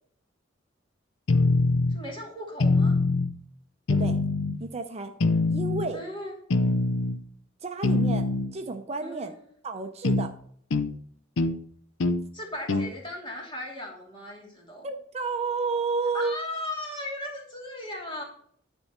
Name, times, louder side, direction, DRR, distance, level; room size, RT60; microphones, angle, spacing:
sound 1, 1.3-2.0 2.6-3.3 3.9-4.6 5.2-5.9 6.5-7.2 7.8-8.5 10.0-10.3 10.7-10.9 11.4-11.6 12.0-12.2 12.7-12.9, left 3 dB, 80° left, 0.6 m, -23 dB
voice 1, 1.9-3.0 5.9-6.3 9.0-9.4 12.3-14.9 16.1-18.2, left 1 dB, 25° left, -2 dB, 2.7 m, -37 dB
voice 2, 4.6-5.1 5.5-6.0 7.6-9.3 9.6-10.3 12.7-12.8 14.8-16.4, right 4 dB, 35° right, 6 dB, 0.6 m, -31 dB
10.0 x 4.4 x 5.8 m, 0.62 s
head